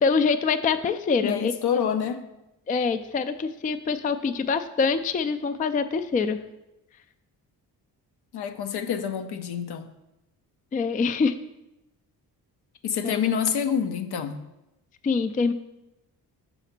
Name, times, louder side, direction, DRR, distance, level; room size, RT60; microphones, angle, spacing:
voice 1, 0.0-1.5 2.7-6.4 10.7-11.4 13.0-13.1 15.0-15.5, left 5 dB, 20° left, 11 dB, 0.3 m, -24 dB
voice 2, 1.2-2.2 8.3-9.9 12.8-14.4, left 8 dB, 70° left, 8 dB, 0.7 m, -27 dB
5.7 x 4.1 x 5.8 m, 0.95 s
supercardioid pair, 60°, 41 cm